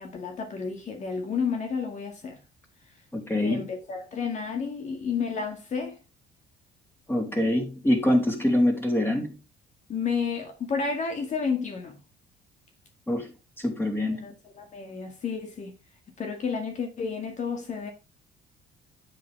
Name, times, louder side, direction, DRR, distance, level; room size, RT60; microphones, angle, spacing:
voice 1, 0.0-2.4 3.3-6.0 9.9-12.0 14.2-15.7 16.2-17.9, left 5 dB, 45° left, 2.1 m, -31 dB
voice 2, 3.1-3.7 7.1-9.4 13.1-14.3, left 1 dB, 15° left, 3.3 m, -25 dB
9.2 x 7.6 x 3.5 m
cardioid pair, 110°, 17 cm